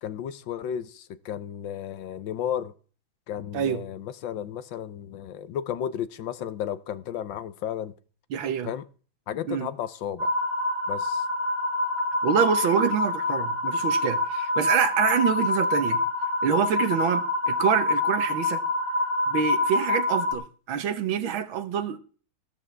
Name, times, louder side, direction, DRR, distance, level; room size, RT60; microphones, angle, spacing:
voice 1, 0.0-2.7 3.3-7.9 8.6-8.8 9.3-10.3 10.9-11.2, left 9 dB, 70° left, 1.4 m, -33 dB
voice 2, 3.5-3.9 8.3-8.7 9.5-9.7 12.2-16.0 16.4-18.6 19.3-22.0, right 8 dB, 75° right, 1.8 m, -26 dB
sound 1, 10.2-20.3, left 2 dB, 10° left, 1.8 m, -26 dB
15.0 x 12.0 x 3.4 m
omnidirectional pair, 2.2 m